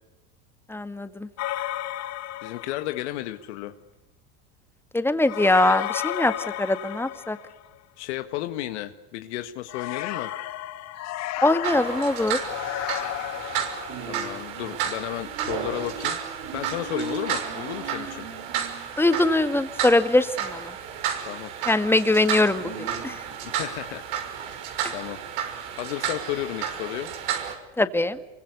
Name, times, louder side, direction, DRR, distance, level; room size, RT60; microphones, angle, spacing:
voice 1, 0.7-1.3 4.9-6.3 6.6-7.4 11.4-12.4 19.0-20.7 21.7-22.7 23.0-23.1 27.8-28.2, left 2 dB, 5° left, 10 dB, 2.0 m, -22 dB
sound 1, 1.4-3.1 5.2-7.8 9.7-14.1, left 14 dB, 50° left, 1.8 m, -33 dB
voice 2, 2.4-3.8 8.0-10.3 14.1-16.2 16.5-18.3 21.3-21.5 23.4-24.0 24.9-25.2 25.8-27.1, left 14 dB, 80° left, 8 dB, 1.8 m, -33 dB
sound 2, 11.6-27.5, right 8 dB, 70° right, 6.2 m, -32 dB
27.0 x 24.5 x 8.3 m, 0.95 s
supercardioid pair, 110°, 34 cm